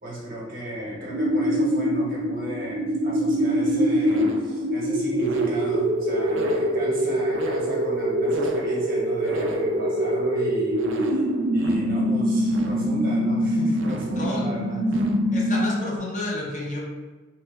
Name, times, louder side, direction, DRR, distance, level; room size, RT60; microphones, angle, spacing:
voice 1, 0.0-11.2 11.5-14.8, equal, 45° right, -5 dB, 0.9 m, -34 dB
sound 1, 1.1-16.0, equal, 70° right, 0.4 m, -24 dB
voice 2, 14.1-14.5 15.3-16.8, left 1 dB, 40° left, -2 dB, 0.5 m, -30 dB
3.1 x 2.0 x 3.3 m, 1.3 s
head